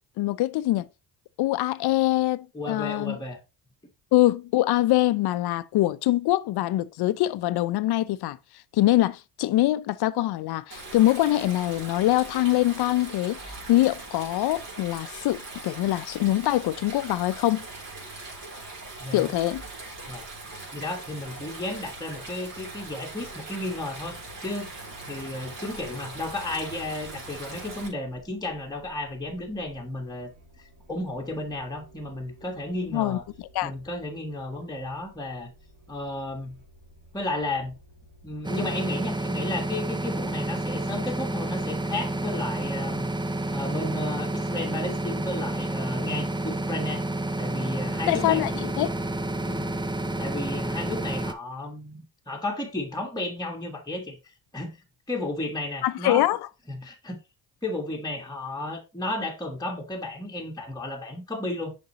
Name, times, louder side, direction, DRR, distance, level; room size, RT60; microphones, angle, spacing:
voice 1, 0.2-0.9 1.4-3.2 4.1-8.4 8.7-17.6 19.1-19.6 32.9-33.2 33.5-33.7 48.1-48.5 48.8-48.9 55.8-56.4, left 15 dB, 60° left, 0.6 m, -24 dB
voice 2, 2.5-3.4 19.0-19.3 20.1-20.3 20.7-24.7 25.1-30.3 30.6-33.2 33.6-35.5 35.9-36.5 37.1-37.7 38.2-43.1 43.5-47.0 47.4-48.5 49.5-49.7 50.2-54.2 54.5-54.8 55.1-56.3 56.7-57.2 57.6-61.8, left 1 dB, 10° left, 1.4 m, -33 dB
Stream, 10.7-27.9, right 2 dB, 50° right, 3.6 m, -41 dB
sound 1, 25.7-38.5, right 1 dB, 70° right, 2.6 m, -54 dB
sound 2, 38.4-51.3, right 2 dB, 10° right, 0.6 m, -30 dB
6.6 x 5.3 x 2.9 m
supercardioid pair, 75°, 44 cm